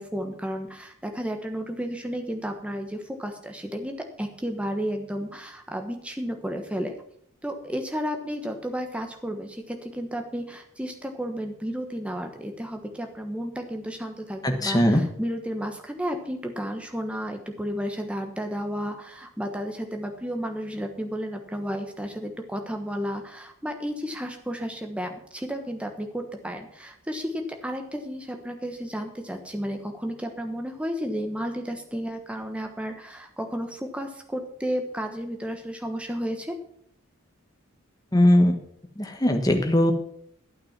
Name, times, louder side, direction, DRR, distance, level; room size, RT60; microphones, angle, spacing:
voice 1, 0.0-6.9 7.4-36.6, equal, 5° right, 4 dB, 1.2 m, -32 dB
voice 2, 14.4-15.0 38.1-38.6 39.0-39.9, left 1 dB, 15° left, 5 dB, 1.3 m, -20 dB
12.0 x 8.7 x 6.0 m, 0.69 s
head